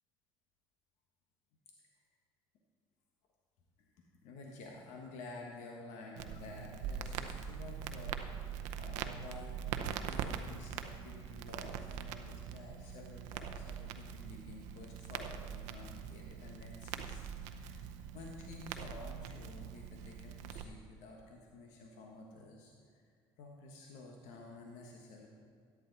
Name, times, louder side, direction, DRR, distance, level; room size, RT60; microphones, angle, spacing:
voice 1, 3.8-23.0 23.4-25.3, left 3 dB, 80° left, 0 dB, 1.4 m, -51 dB
Crackle, 6.2-20.6, right 8 dB, 85° right, 0.7 m, -43 dB
13.5 x 9.9 x 4.1 m, 2.2 s
supercardioid pair, 80°, 12 cm